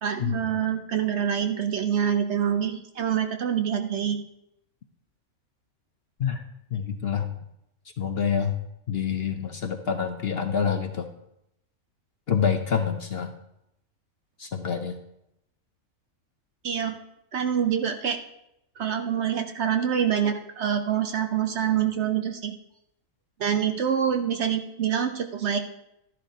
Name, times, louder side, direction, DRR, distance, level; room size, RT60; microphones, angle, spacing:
voice 1, 0.0-4.2 16.6-17.0 17.3-18.2 18.8-22.6 23.4-25.6, right 8 dB, 60° right, 6 dB, 0.9 m, -26 dB
voice 2, 6.7-7.3 8.0-8.5 8.9-11.1 12.3-13.3 14.4-14.9, left 7 dB, 55° left, 6 dB, 0.8 m, -27 dB
13.0 x 10.5 x 2.7 m, 0.82 s
omnidirectional pair, 1.5 m